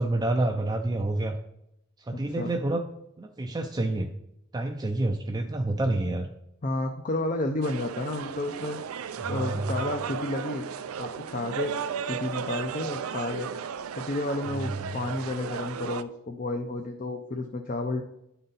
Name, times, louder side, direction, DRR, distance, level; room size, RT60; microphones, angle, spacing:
voice 1, 0.0-1.4 2.0-2.8 3.2-4.1 4.5-6.3 9.2-9.9 14.5-15.0, right 2 dB, 20° right, 3 dB, 0.4 m, -28 dB
voice 2, 2.1-2.5 6.6-8.8 9.3-10.6 11.0-11.7 12.1-13.5 14.0-18.0, left 2 dB, 35° left, 4 dB, 0.5 m, -31 dB
sound 1, 7.6-16.0, right 7 dB, 85° right, 0.4 m, -35 dB
11.0 x 4.0 x 3.9 m, 0.81 s
head